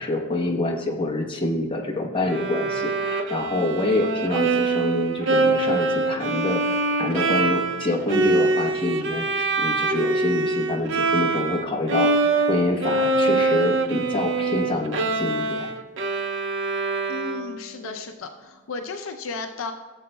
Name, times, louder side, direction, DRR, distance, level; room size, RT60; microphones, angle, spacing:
voice 1, 0.0-6.6 7.0-12.2 12.5-15.7, left 2 dB, 25° left, 0 dB, 1.0 m, -26 dB
Bowed string instrument, 2.3-11.6 11.9-17.7, right 3 dB, 60° right, 0.6 m, -24 dB
voice 2, 17.1-19.7, left 3 dB, 70° left, 5 dB, 0.6 m, -34 dB
15.5 x 7.4 x 2.2 m, 1.3 s
head